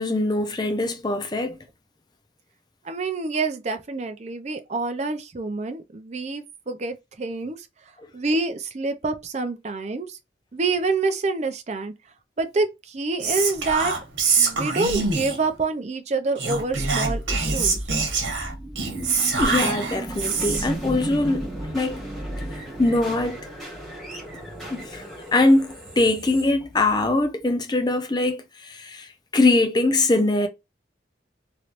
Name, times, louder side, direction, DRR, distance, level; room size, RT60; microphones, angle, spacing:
voice 1, 0.0-1.6 8.0-8.1 19.4-22.1 22.8-23.4 24.7-25.0 25.3-30.5, left 2 dB, 20° left, 0.5 m, -22 dB
voice 2, 2.8-7.7 8.1-10.2 10.5-11.9 12.4-13.9 14.4-17.8, right 3 dB, 40° right, 0.5 m, -27 dB
Whispering, 13.2-15.5 16.4-20.8, right 4 dB, 85° right, 1.1 m, -25 dB
sound 1, 16.7-27.5, right 1 dB, ahead, 1.7 m, -34 dB
3.1 x 2.9 x 2.5 m
head